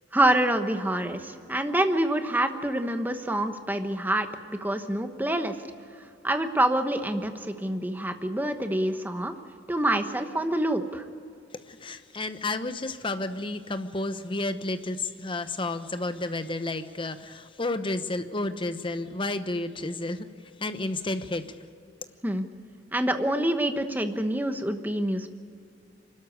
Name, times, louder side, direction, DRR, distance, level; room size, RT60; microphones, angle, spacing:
voice 1, 0.1-5.5 6.2-9.4 9.7-11.0 22.2-22.5 22.9-25.3, right 1 dB, 10° right, 8 dB, 1.1 m, -26 dB
voice 2, 11.5-20.3 20.6-21.6, left 2 dB, 30° left, 10 dB, 1.0 m, -31 dB
24.0 x 13.0 x 9.7 m, 2.4 s
head